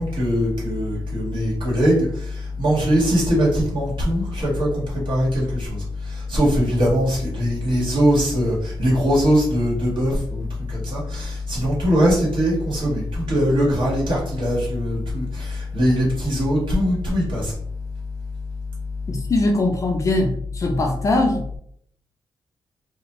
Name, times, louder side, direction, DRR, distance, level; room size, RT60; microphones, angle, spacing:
voice 1, 0.0-17.5, equal, 60° right, -6 dB, 1.4 m, -21 dB
voice 2, 19.1-21.4, left 2 dB, 35° left, 2 dB, 0.4 m, -21 dB
2.4 x 2.2 x 3.0 m, 0.66 s
wide cardioid pair, 125°, 9 cm